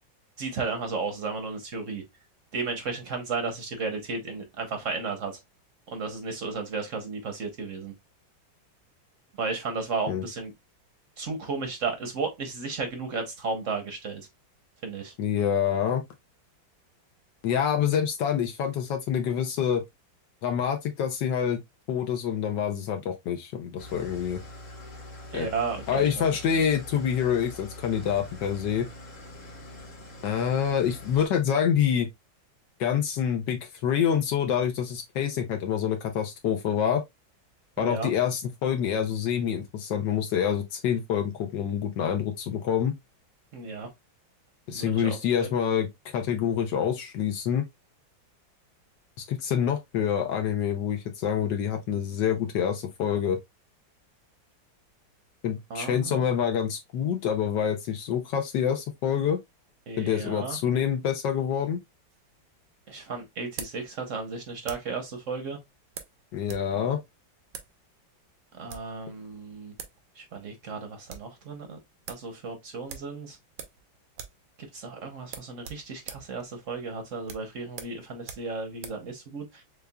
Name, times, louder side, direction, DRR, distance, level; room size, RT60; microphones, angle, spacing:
voice 1, 0.4-2.0 2.5-5.3 5.9-7.9 9.4-10.5 11.2-14.3 14.8-15.1 25.3-26.2 37.8-38.1 43.5-43.9 44.7-45.5 55.7-56.3 59.9-60.6 62.9-65.6 66.7-67.0 68.5-69.7 70.2-71.8 72.1-73.4 74.7-79.6, right 4 dB, 50° right, 1.0 m, -34 dB
voice 2, 15.2-16.0 17.4-19.8 20.4-21.6 21.9-24.4 25.3-25.5 25.9-28.9 30.2-32.1 32.8-37.0 37.8-43.0 44.7-47.6 49.2-53.4 55.4-59.4 60.0-61.8 66.3-67.0, left 8 dB, 70° left, 1.3 m, -26 dB
Engine starting / Idling, 23.8-31.3, left 1 dB, 45° left, 1.7 m, -44 dB
sound 1, 62.1-65.0 65.9-66.7 66.9-67.0 67.5-67.7 68.5-69.0 69.5-69.6 69.8-70.0 70.3-70.4 70.7-71.3 71.7-71.8 72.1-72.3 72.9-73.9 74.1-74.5 74.7-74.8 75.2-79.1, right 7 dB, 85° right, 1.5 m, -43 dB
6.6 x 2.3 x 2.2 m
omnidirectional pair, 2.1 m